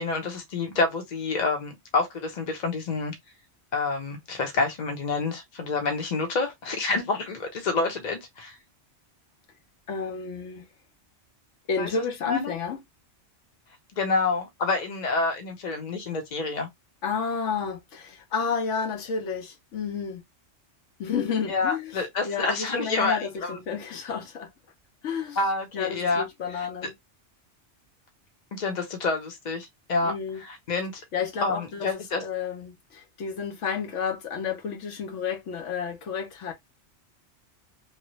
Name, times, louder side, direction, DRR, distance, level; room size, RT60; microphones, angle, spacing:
voice 1, 0.0-3.1 3.7-8.6 11.8-11.9 12.2-12.5 14.0-16.7 21.5-23.6 25.4-26.3 26.5-26.7 28.5-30.1 30.4-31.0 31.4-32.2, left 3 dB, 40° left, 0.9 m, -28 dB
voice 2, 9.9-10.7 11.7-12.8 17.0-20.2 21.0-24.5 25.0-25.4 25.7-26.9 30.0-30.4 31.1-31.9 32.2-36.5, left 6 dB, 80° left, 1.1 m, -31 dB
2.9 x 2.3 x 3.0 m
omnidirectional pair, 1.2 m